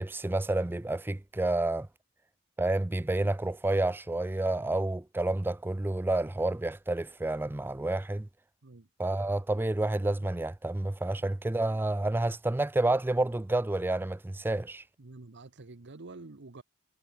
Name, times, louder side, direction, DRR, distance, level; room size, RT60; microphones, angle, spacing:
voice 1, 0.0-1.9 2.6-8.3 9.0-14.8, right 2 dB, 10° right, 0.4 m, -29 dB
voice 2, 15.0-16.6, right 3 dB, 55° right, 1.1 m, -48 dB
head